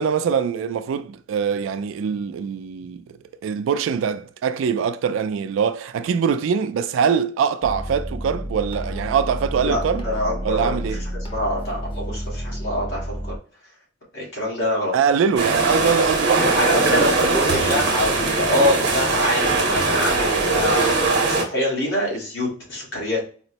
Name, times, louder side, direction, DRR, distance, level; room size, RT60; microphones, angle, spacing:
voice 1, 0.0-3.0 3.4-10.0 10.4-11.0 14.9-17.4, right 6 dB, 85° right, 0.3 m, -23 dB
sound 1, 7.6-13.4, equal, 25° left, 0.5 m, -30 dB
voice 2, 9.6-13.3 14.1-14.9 16.6-20.9 21.3-23.2, left 1 dB, 75° left, 1.6 m, -24 dB
sound 2, 15.4-21.4, right 3 dB, 60° right, 0.8 m, -21 dB
4.2 x 2.0 x 2.7 m
head